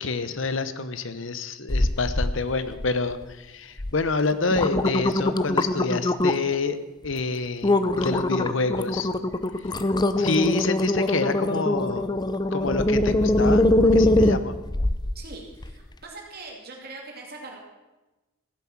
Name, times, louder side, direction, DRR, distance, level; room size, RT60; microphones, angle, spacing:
voice 1, 0.0-6.8 7.0-9.1 9.6-9.7 10.2-12.1 12.5-14.5, left 3 dB, 65° left, 12 dB, 1.0 m, -27 dB
sound 1, 1.7-2.3 2.7-3.2 3.8-3.9 4.3-6.6 7.0-7.2 7.6-15.1 15.6-15.7, left 1 dB, 20° left, 0.6 m, -22 dB
voice 2, 15.1-17.6, right 3 dB, 50° right, 0 dB, 2.5 m, -41 dB
15.0 x 10.5 x 7.3 m, 1.1 s
head